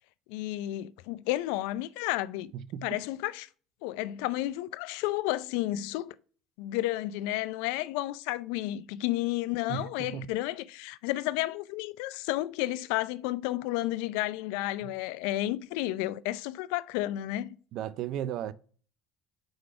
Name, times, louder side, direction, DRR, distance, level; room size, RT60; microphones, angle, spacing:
voice 1, 0.3-2.5 2.8-3.5 3.8-6.1 6.6-17.5, left 16 dB, 80° left, 0.4 m, -32 dB
voice 2, 2.5-2.9 9.7-10.3 14.8-14.9 17.7-18.5, right 10 dB, 65° right, 0.5 m, -35 dB
4.8 x 4.0 x 5.7 m
supercardioid pair, 95°, 0 cm